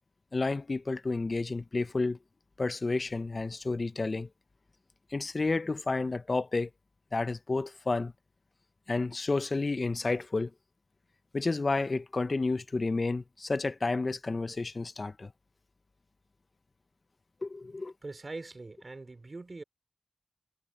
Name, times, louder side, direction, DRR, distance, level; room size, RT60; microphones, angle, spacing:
voice 1, 0.3-2.2 2.6-4.3 5.1-6.7 7.1-8.1 8.9-10.5 11.3-15.3 17.4-17.9, left 3 dB, 55° left, 1.0 m, -31 dB
voice 2, 18.0-19.6, right 3 dB, 55° right, 5.0 m, -42 dB
cardioid pair, 45°, 0 cm